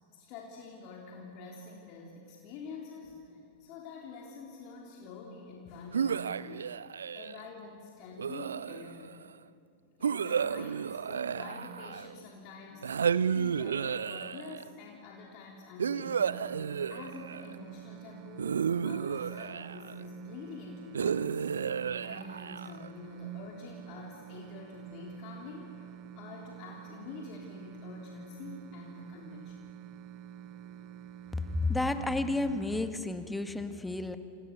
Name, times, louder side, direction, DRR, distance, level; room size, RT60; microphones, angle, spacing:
voice 1, 0.1-6.7 7.1-9.2 10.0-16.4 16.9-21.5 22.0-29.7, left 3 dB, 45° left, -1 dB, 3.5 m, -47 dB
sound 1, 5.9-7.5 8.2-9.1 10.0-12.2 12.8-14.7 15.8-17.6 18.4-20.0 20.9-22.9, right 7 dB, 70° right, 0.5 m, -32 dB
sound 2, 16.0-32.9, right 10 dB, 40° right, 0.9 m, -48 dB
voice 2, 31.6-34.2, left 2 dB, 5° left, 9 dB, 1.6 m, -31 dB
28.5 x 28.0 x 6.9 m, 2.5 s
figure-of-eight pair, 90°, 0 cm